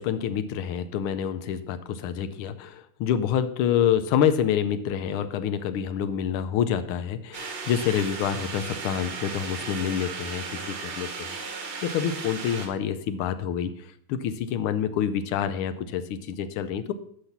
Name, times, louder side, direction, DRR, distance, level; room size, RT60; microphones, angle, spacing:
voice 1, 0.0-11.3 11.8-16.9, left 9 dB, 90° left, 11 dB, 1.5 m, -27 dB
sound 1, 7.3-12.7, right 5 dB, 85° right, 2.5 m, -36 dB
9.5 x 5.8 x 5.8 m, 0.65 s
omnidirectional pair, 2.3 m